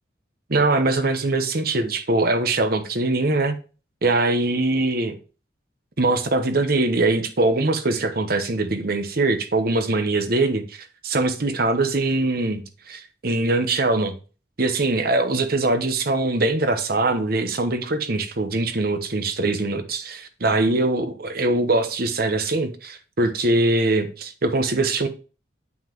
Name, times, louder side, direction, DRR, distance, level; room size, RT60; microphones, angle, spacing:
voice 1, 0.5-3.6 4.0-5.2 6.0-14.1 14.6-25.1, right 2 dB, 55° right, 1.0 m, -22 dB
9.6 x 5.6 x 3.0 m
head